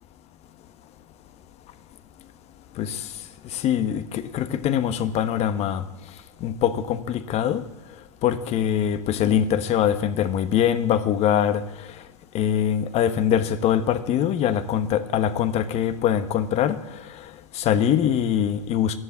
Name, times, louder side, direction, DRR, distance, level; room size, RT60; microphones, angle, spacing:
voice 1, 3.5-5.8 6.4-7.6 8.2-11.6 12.3-16.8 17.5-19.0, left 9 dB, 40° left, 1.1 m, -23 dB
13.0 x 11.0 x 8.4 m
supercardioid pair, 125°, 17 cm